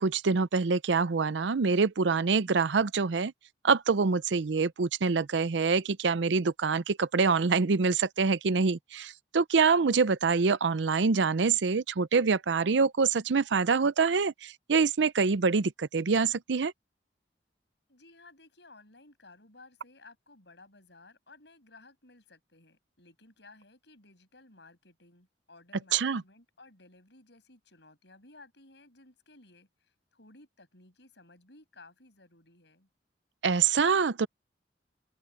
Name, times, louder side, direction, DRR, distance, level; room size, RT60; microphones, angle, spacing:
voice 1, 0.0-3.3 3.6-16.7 25.9-26.2 33.4-34.3, right 5 dB, 80° right, 0.6 m, -25 dB
voice 2, 17.9-32.9, left 2 dB, 70° left, 7.9 m, -57 dB
open air
head